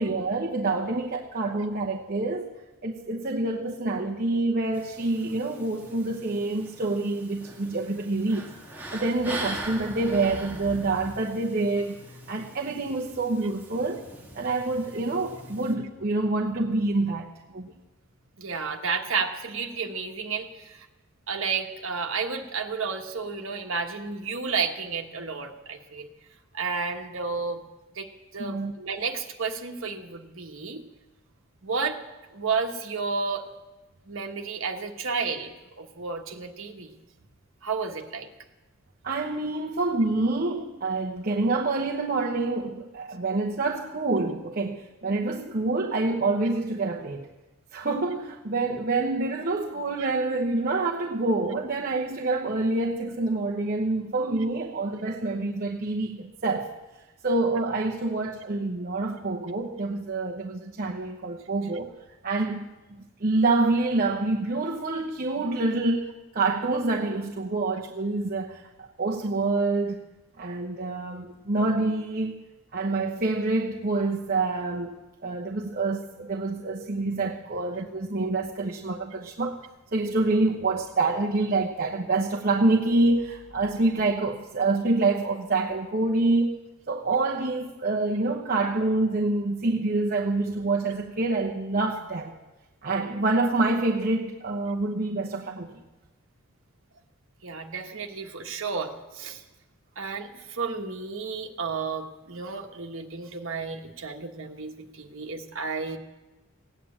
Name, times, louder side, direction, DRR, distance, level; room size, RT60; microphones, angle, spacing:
voice 1, 0.0-2.6 2.8-8.5 8.9-12.0 12.3-14.0 14.3-17.7 28.4-28.7 39.0-47.3 47.7-56.7 57.2-61.9 62.2-62.6 63.2-70.0 70.4-72.4 72.7-75.0 75.2-79.6 79.9-86.6 86.9-92.4 92.8-95.8, right 2 dB, 45° right, -1 dB, 1.0 m, -27 dB
sound 1, 4.7-15.7, right 1 dB, 10° right, 1.7 m, -41 dB
voice 2, 18.4-20.9 21.3-26.1 26.5-27.6 27.9-30.8 31.6-32.0 32.3-33.5 34.1-36.9 37.6-38.3 97.4-99.4 100.0-106.0, right 5 dB, 60° right, 3 dB, 1.4 m, -32 dB
16.0 x 9.4 x 8.6 m, 1.1 s
head